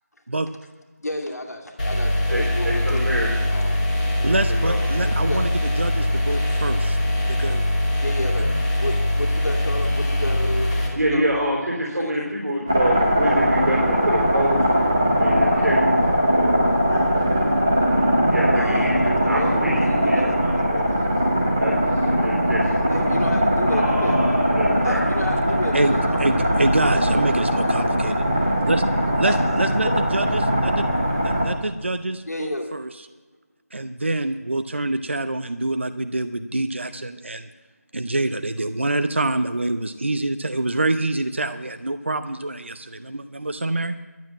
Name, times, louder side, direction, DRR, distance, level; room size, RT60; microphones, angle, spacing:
voice 1, 1.0-3.1 3.5-3.8 5.0-5.5 7.9-8.5 8.8-10.7 11.1-11.5 12.0-12.3 18.5-20.4 22.9-24.2 24.8-26.7 29.2-30.0 32.3-32.7, left 1 dB, 75° left, 3 dB, 2.4 m, -31 dB
sound 1, 1.8-10.9, left 1 dB, 30° left, 2.9 m, -22 dB
voice 2, 2.3-3.3 4.2-4.8 11.0-14.7 15.2-15.8 18.3-20.9 21.6-22.9 23.7-25.0, right 1 dB, 75° right, -2 dB, 3.9 m, -27 dB
voice 3, 4.2-7.0 7.2-7.7 25.7-28.8 29.2-30.9 31.2-32.9 33.7-37.5 37.9-43.9, right 2 dB, 45° right, 10 dB, 0.5 m, -26 dB
sound 2, 12.7-31.5, equal, 10° right, 0.7 m, -20 dB
12.0 x 8.8 x 8.6 m, 1.3 s
figure-of-eight pair, 180°, 9 cm